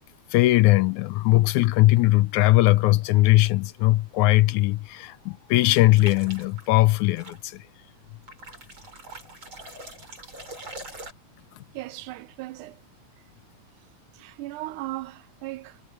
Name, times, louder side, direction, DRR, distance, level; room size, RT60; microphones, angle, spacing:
voice 1, 0.3-7.6, left 18 dB, 80° left, 1.9 m, -20 dB
sound 1, 5.9-6.7 7.2-7.4 8.3-11.1, right 2 dB, 35° right, 8.4 m, -42 dB
voice 2, 11.7-12.8 14.1-15.8, right 17 dB, 85° right, 2.1 m, -37 dB
omnidirectional pair, 3.6 m